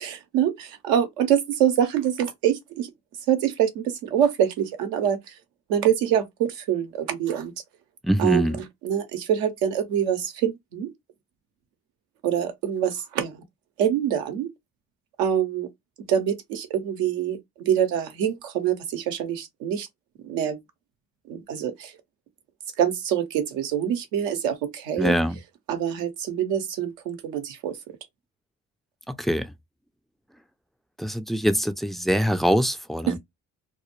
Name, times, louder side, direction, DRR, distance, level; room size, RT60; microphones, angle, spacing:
voice 1, 0.0-2.9 3.3-5.3 5.7-7.5 8.2-10.9 12.2-13.4 13.8-14.5 15.2-15.7 16.1-19.9 20.2-20.6 21.3-21.9 22.8-25.2 25.7-27.8 33.1-33.2, right 9 dB, 80° right, 0.7 m, -25 dB
voice 2, 8.0-8.6 25.0-25.4 29.1-29.5 31.0-33.2, equal, ahead, 0.3 m, -23 dB
2.1 x 2.0 x 3.0 m
hypercardioid pair, 50°, 36 cm